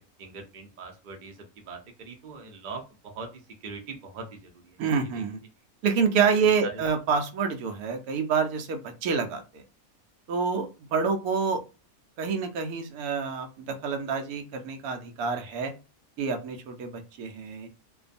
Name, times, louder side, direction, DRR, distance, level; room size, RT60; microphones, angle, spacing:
voice 1, 0.2-4.8 5.2-5.3 6.4-6.8, right 4 dB, 50° right, 3 dB, 0.6 m, -42 dB
voice 2, 4.8-5.4 5.8-9.6 10.3-11.6 12.2-15.7 16.2-17.7, right 5 dB, 90° right, 5 dB, 1.1 m, -27 dB
2.6 x 2.2 x 2.5 m, 0.30 s
omnidirectional pair, 1.5 m